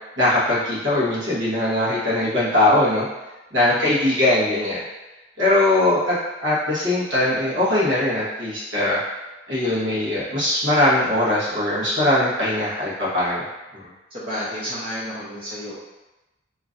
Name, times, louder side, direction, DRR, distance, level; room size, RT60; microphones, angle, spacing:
voice 1, 0.2-3.1 3.5-4.8 5.4-6.1 6.4-9.0 9.5-13.4 13.7-13.9, left 1 dB, 75° right, -8 dB, 1.3 m, -20 dB
voice 2, 14.1-15.7, equal, 30° right, -8 dB, 0.6 m, -31 dB
3.0 x 2.5 x 3.7 m, 1.1 s
head